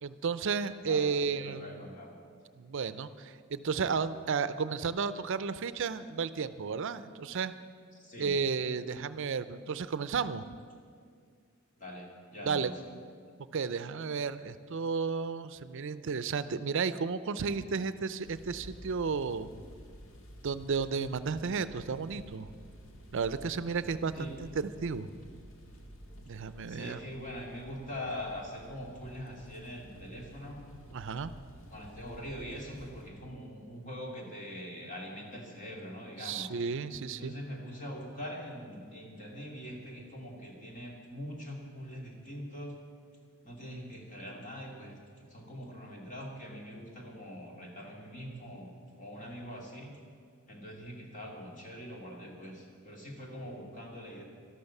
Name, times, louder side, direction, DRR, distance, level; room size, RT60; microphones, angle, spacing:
voice 1, 0.0-1.8 2.6-7.5 8.2-10.4 12.5-12.7 13.5-19.5 20.4-22.5 23.1-25.1 26.3-27.0 30.9-31.3 36.2-37.4, right 5 dB, 65° right, 14 dB, 0.5 m, -33 dB
voice 2, 0.9-2.1 7.9-8.3 11.8-12.8 24.1-24.3 26.7-30.6 31.7-36.5 37.1-42.8 43.4-50.0 50.5-54.2, equal, 40° left, 0 dB, 2.5 m, -43 dB
sound 1, 18.2-33.1, equal, 70° left, 1.7 m, -51 dB
13.0 x 12.0 x 7.1 m, 2.1 s
head